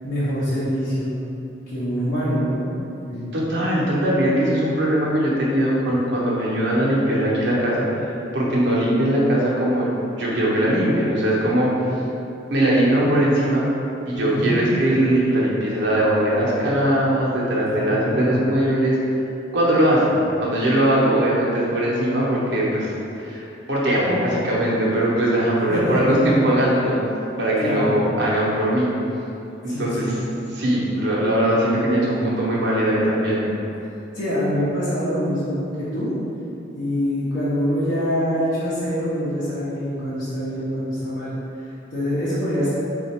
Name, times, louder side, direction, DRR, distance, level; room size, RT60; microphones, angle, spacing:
voice 1, 0.0-1.1 1.7-2.7 3.1-3.2 11.8-11.9 14.1-14.6 17.7-18.3 25.7-26.4 27.6-28.0 29.7-30.1 34.1-36.1 36.7-42.7, equal, 55° left, -13 dB, 1.0 m, -25 dB
voice 2, 3.3-9.9 10.2-11.9 12.5-13.7 14.1-19.0 19.5-22.9 23.2-27.0 27.4-28.9 29.6-30.2 30.5-33.5, right 1 dB, 70° right, -6 dB, 0.8 m, -20 dB
3.9 x 2.5 x 4.2 m, 2.8 s
head